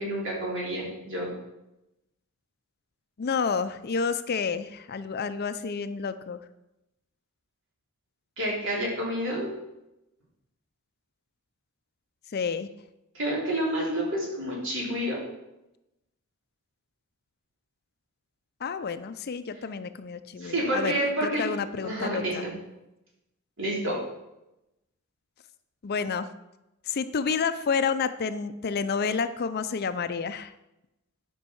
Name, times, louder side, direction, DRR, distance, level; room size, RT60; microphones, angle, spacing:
voice 1, 0.0-1.3 8.4-9.6 13.1-15.2 20.4-21.4 21.8-22.5 23.6-24.0, right 1 dB, 60° right, -3 dB, 3.4 m, -29 dB
voice 2, 3.2-6.4 12.3-12.7 18.6-22.5 25.8-26.3 26.9-30.5, left 5 dB, 45° left, 11 dB, 0.5 m, -29 dB
9.8 x 5.4 x 6.3 m, 0.92 s
head